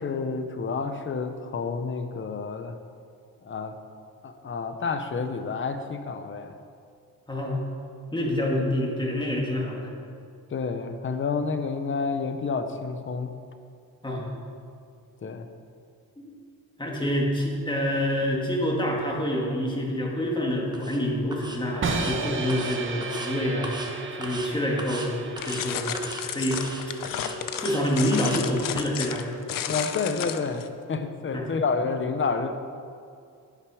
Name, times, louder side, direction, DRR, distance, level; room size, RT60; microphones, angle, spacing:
voice 1, 0.0-2.8 3.4-3.8 4.2-6.6 10.5-13.3 15.2-15.5 29.7-32.6, left 4 dB, 35° left, 8 dB, 0.8 m, -29 dB
voice 2, 7.3-7.6 8.1-9.9 14.0-14.3 16.2-16.3 16.8-23.7 24.1-26.6 27.6-29.2 31.3-31.5, left 1 dB, 15° left, -2 dB, 1.9 m, -27 dB
sound 1, 20.7-21.0 21.3-21.6 21.9-22.2 22.5-23.3 23.6-23.9 24.2-24.5 24.8-25.1 25.4-25.6 25.9-26.2 26.5-27.8 28.1-28.4, right 1 dB, 10° right, 1.1 m, -38 dB
sound 2, 21.8-27.8, right 3 dB, 35° right, 0.9 m, -34 dB
sound 3, 25.4-30.7, left 9 dB, 65° left, 0.7 m, -32 dB
11.0 x 9.2 x 4.9 m, 2.4 s
cardioid pair, 135°, 35 cm